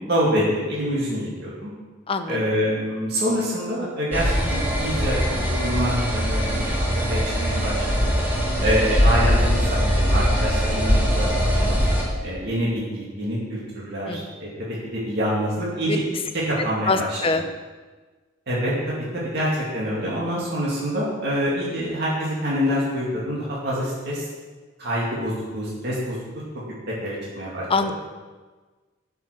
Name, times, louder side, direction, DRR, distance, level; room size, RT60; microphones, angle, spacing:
voice 1, 0.0-1.7 2.3-5.2 5.5-6.7 7.1-8.1 8.6-11.8 12.2-14.5 14.9-16.0 16.5-17.2 18.5-24.3 24.8-26.2 27.0-27.9, equal, 55° right, -6 dB, 2.3 m, -26 dB
voice 2, 2.1-2.4 14.1-14.2 16.9-17.4 27.7-27.9, left 3 dB, 25° left, 7 dB, 0.6 m, -23 dB
sound 1, 4.1-12.0, equal, 10° right, 2.1 m, -21 dB
10.0 x 5.9 x 6.3 m, 1.3 s
head